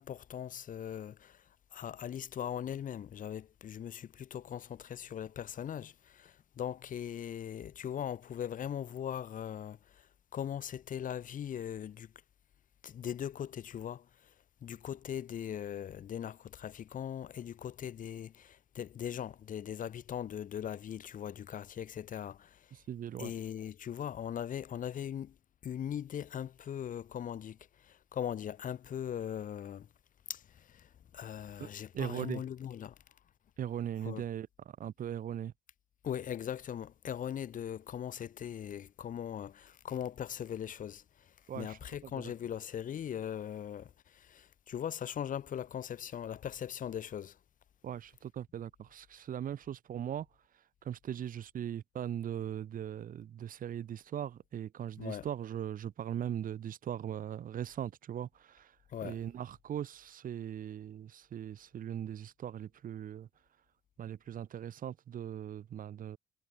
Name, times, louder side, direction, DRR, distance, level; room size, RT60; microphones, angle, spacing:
voice 1, 0.0-12.1 12.8-14.3 14.6-22.8 23.2-25.4 25.6-29.9 30.3-33.0 34.0-34.2 36.0-47.4 55.0-55.3 58.9-59.2, left 9 dB, 50° left, 6.2 m, -40 dB
voice 2, 22.9-23.3 31.6-31.7 31.9-32.4 33.6-34.5 34.8-35.5 41.5-41.8 42.0-42.3 47.8-50.3 50.8-58.7 59.0-63.3 64.0-66.2, right 10 dB, 55° right, 7.2 m, -39 dB
cardioid pair, 110°, 17 cm